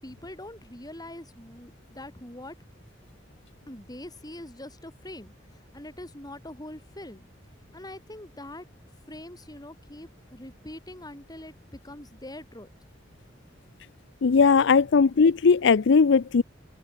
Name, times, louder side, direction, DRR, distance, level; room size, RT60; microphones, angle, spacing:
voice 1, 0.0-2.9 3.7-7.3 7.7-8.6 9.1-12.7, left 1 dB, 20° left, 5.6 m, -43 dB
voice 2, 14.2-16.4, left 5 dB, 70° left, 0.5 m, -19 dB
open air
head